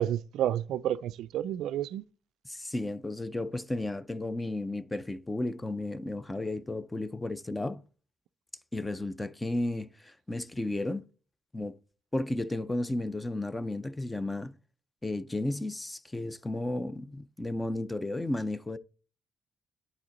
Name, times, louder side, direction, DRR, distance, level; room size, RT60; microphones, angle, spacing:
voice 1, 0.0-2.0, right 11 dB, 80° right, 0.3 m, -30 dB
voice 2, 2.5-7.8 8.7-11.0 11.5-11.7 12.1-14.6 15.0-18.8, left 2 dB, 15° left, 0.5 m, -33 dB
10.5 x 4.2 x 3.9 m
cardioid pair, 90°, 0 cm